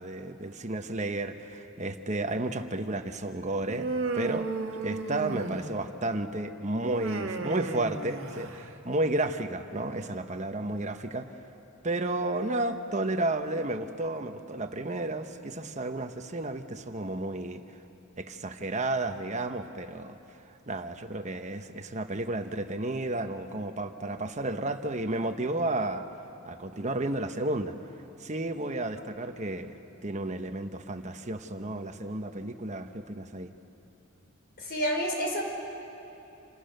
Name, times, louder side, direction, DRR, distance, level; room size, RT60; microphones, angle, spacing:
voice 1, 0.0-3.9 4.1-4.5 4.8-11.3 11.8-17.6 18.2-20.2 20.7-26.1 26.4-27.8 28.2-29.8 30.0-33.5, right 2 dB, 35° right, 7 dB, 1.0 m, -32 dB
Human voice, 3.7-6.0 6.8-8.7, right 3 dB, 65° right, 1.7 m, -34 dB
voice 2, 34.6-35.4, equal, 45° left, 1 dB, 4.7 m, -29 dB
28.0 x 27.5 x 6.7 m, 2.8 s
head